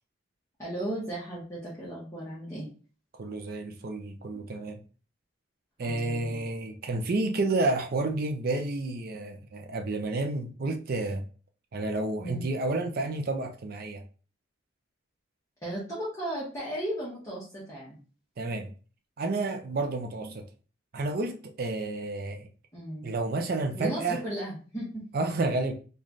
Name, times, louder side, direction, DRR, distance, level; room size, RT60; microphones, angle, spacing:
voice 1, 0.6-2.7 5.8-6.4 12.2-12.4 15.6-18.0 20.2-20.3 22.7-23.1 23.7-25.0, right 1 dB, 15° left, 1.1 m, -35 dB
voice 2, 3.2-4.8 5.8-11.3 11.7-14.0 18.4-18.7 19.2-20.4 20.9-22.5 23.0-24.2 25.1-25.7, right 2 dB, 50° right, 0.5 m, -30 dB
3.1 x 2.3 x 3.9 m
head